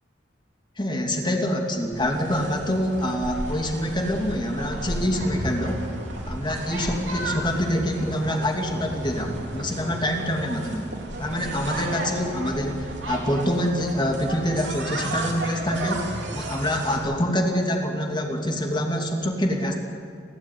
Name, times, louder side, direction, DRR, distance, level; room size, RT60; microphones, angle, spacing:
voice 1, 0.8-5.9 6.2-10.9 11.2-19.8, equal, 25° left, 2 dB, 2.8 m, -26 dB
sound 1, 1.9-17.0, right 1 dB, 70° right, 3.8 m, -33 dB
29.5 x 12.0 x 9.5 m, 2.3 s
head